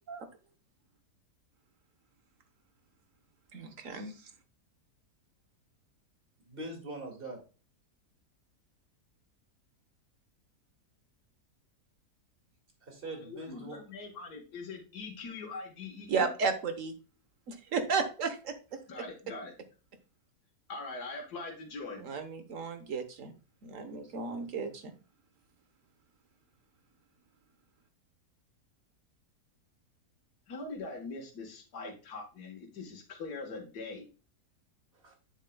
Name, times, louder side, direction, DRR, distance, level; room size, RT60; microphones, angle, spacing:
voice 1, 3.5-4.1 16.1-16.9 17.5-18.5 22.0-23.3 23.6-24.9, right 5 dB, 55° right, 8 dB, 1.4 m, -33 dB
voice 2, 6.5-7.4 12.8-13.8 34.9-35.1, right 1 dB, 35° right, 1 dB, 2.4 m, -42 dB
voice 3, 13.2-16.3 18.9-19.5 20.7-22.0 30.5-34.1, left 3 dB, 70° left, 0 dB, 2.0 m, -42 dB
9.0 x 7.3 x 2.3 m, 0.35 s
omnidirectional pair, 1.7 m